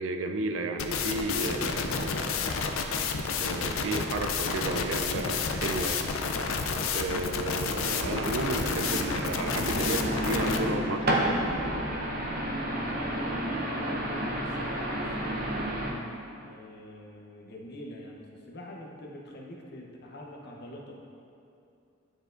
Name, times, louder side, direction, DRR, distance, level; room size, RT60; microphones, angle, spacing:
voice 1, 0.0-2.4 3.2-6.0 6.9-11.4, right 2 dB, 75° right, 6 dB, 0.4 m, -33 dB
sound 1, 0.8-10.6, left 5 dB, 85° left, 0.5 m, -30 dB
sound 2, 7.8-15.9, equal, 50° right, 0.7 m, -31 dB
voice 2, 12.6-15.7 16.4-18.2 18.5-21.0, equal, 55° left, -1 dB, 0.8 m, -44 dB
10.0 x 4.5 x 2.5 m, 2.6 s
head